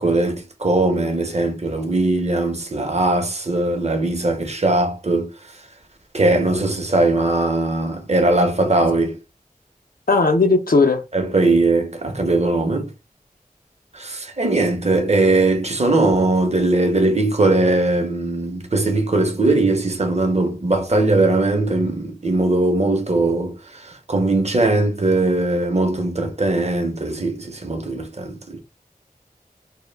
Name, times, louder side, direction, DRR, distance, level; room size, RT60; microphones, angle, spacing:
voice 1, 0.0-5.3 6.1-9.2 11.1-12.9 13.9-23.6 24.1-28.6, right 2 dB, 45° right, 0.6 m, -20 dB
voice 2, 10.1-11.0, left 3 dB, 75° left, 0.4 m, -16 dB
2.2 x 2.0 x 3.2 m
wide cardioid pair, 40°, 15 cm